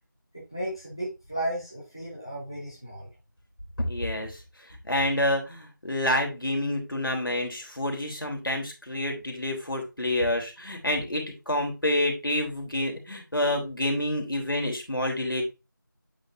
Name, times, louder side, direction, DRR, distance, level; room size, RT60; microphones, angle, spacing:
voice 1, 0.3-3.1, right 1 dB, 15° left, -5 dB, 0.9 m, -34 dB
voice 2, 3.8-4.4 4.8-15.4, left 1 dB, 80° left, 2 dB, 3.1 m, -28 dB
8.4 x 5.3 x 2.6 m, 0.26 s
figure-of-eight pair, 180°, 11 cm